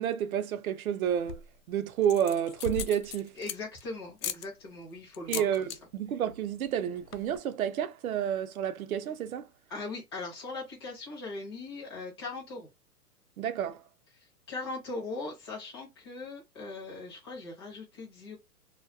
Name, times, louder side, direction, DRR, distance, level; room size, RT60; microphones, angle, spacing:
voice 1, 0.0-3.4 5.3-9.5 13.4-13.8, right 9 dB, 65° right, 0.6 m, -30 dB
sound 1, 1.1-1.6 2.0-3.8 4.2-4.5 5.1-5.8 6.1-6.4 6.6-6.7 7.0-7.4, left 8 dB, 85° left, 0.6 m, -38 dB
voice 2, 3.4-5.5 9.7-12.7 14.5-18.4, left 3 dB, 20° left, 0.5 m, -40 dB
2.2 x 2.2 x 2.5 m
hypercardioid pair, 170°, 46 cm